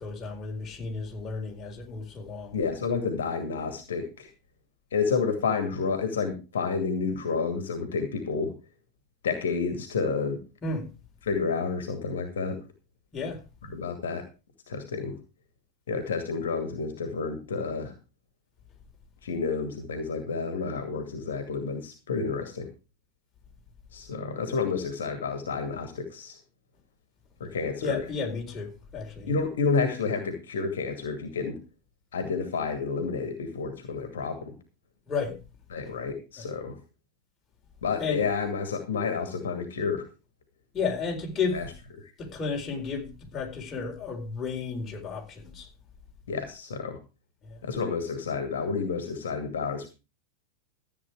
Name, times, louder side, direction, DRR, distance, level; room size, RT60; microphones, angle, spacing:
voice 1, 0.0-2.6 10.6-10.9 13.1-13.4 27.8-29.3 35.1-35.4 36.4-36.5 38.0-38.2 40.7-41.6 42.2-45.7 47.4-47.6, left 4 dB, 25° left, 4.1 m, -32 dB
voice 2, 2.5-4.3 4.9-8.5 9.2-10.4 11.2-12.6 13.7-14.2 14.7-15.2 15.9-17.9 19.2-22.7 23.9-26.4 27.4-28.0 29.3-31.6 32.1-34.6 35.7-36.8 37.8-40.1 41.5-41.7 42.0-42.1 46.3-47.0 47.6-49.9, left 5 dB, 65° left, 2.3 m, -30 dB
14.0 x 8.6 x 4.7 m
figure-of-eight pair, 90°, 0 cm